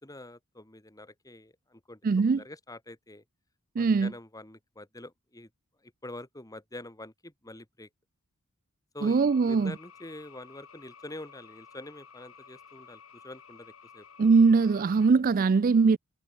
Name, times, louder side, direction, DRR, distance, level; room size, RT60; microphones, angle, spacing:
voice 1, 0.0-3.2 3.8-5.5 5.8-7.9 8.9-14.1 15.7-16.0, left 1 dB, 15° left, 2.2 m, -46 dB
voice 2, 2.0-2.4 3.8-4.1 9.0-9.7 14.2-16.0, right 4 dB, 40° right, 0.4 m, -21 dB
sound 1, 9.1-15.1, left 6 dB, 65° left, 2.0 m, -53 dB
head